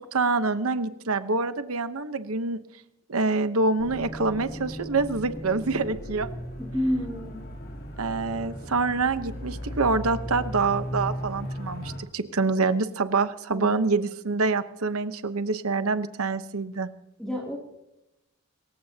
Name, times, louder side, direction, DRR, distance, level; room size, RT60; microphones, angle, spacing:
voice 1, 0.1-2.6 3.1-6.3 8.0-16.9, right 3 dB, 75° right, 11 dB, 1.0 m, -26 dB
sound 1, 3.8-12.0, equal, 45° left, 3.1 m, -36 dB
voice 2, 6.6-7.4 13.5-13.8 17.2-17.6, equal, 5° left, -3 dB, 2.6 m, -29 dB
27.0 x 15.0 x 2.8 m, 0.91 s
head